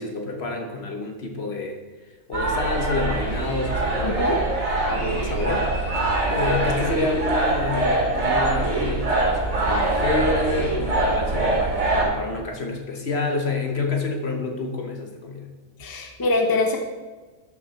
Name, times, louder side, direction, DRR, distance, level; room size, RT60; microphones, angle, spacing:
voice 1, 0.0-1.8 2.3-4.6 4.9-5.7 6.3-15.5, left 3 dB, 50° left, 3 dB, 1.3 m, -28 dB
sound 1, 2.3-12.0, right 2 dB, 65° right, 3.2 m, -23 dB
voice 2, 4.0-4.4 15.8-16.8, left 2 dB, 20° left, 3 dB, 0.8 m, -23 dB
12.5 x 6.3 x 4.2 m, 1.3 s
omnidirectional pair, 1.5 m